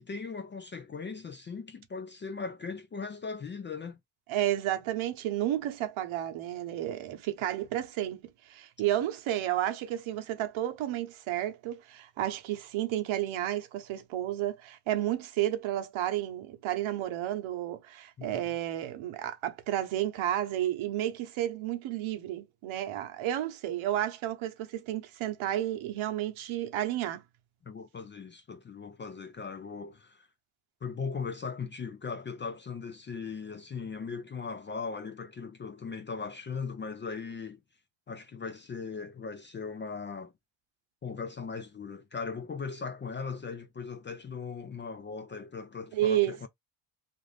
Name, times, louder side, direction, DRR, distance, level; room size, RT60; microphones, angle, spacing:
voice 1, 0.0-4.0 18.2-18.5 27.6-30.3 30.8-37.6 38.1-40.3 41.0-46.5, left 5 dB, 25° left, 0.4 m, -39 dB
voice 2, 4.3-8.2 8.5-27.2 45.9-46.4, right 12 dB, 70° right, 0.9 m, -31 dB
2.5 x 2.5 x 3.3 m
cardioid pair, 95°, 50 cm